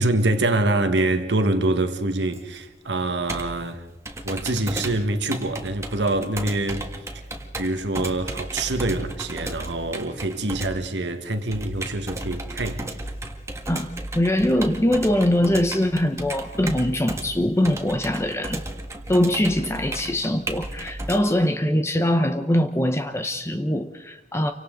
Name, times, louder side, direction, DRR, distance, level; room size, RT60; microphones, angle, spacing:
voice 1, 0.0-3.8 4.2-6.9 7.6-12.9, right 2 dB, 90° right, 1.7 m, -25 dB
Computer keyboard, 2.3-21.2, right 1 dB, 15° right, 1.7 m, -34 dB
voice 2, 14.1-18.6 19.1-24.5, left 1 dB, 15° left, 0.7 m, -22 dB
29.0 x 24.5 x 3.9 m
head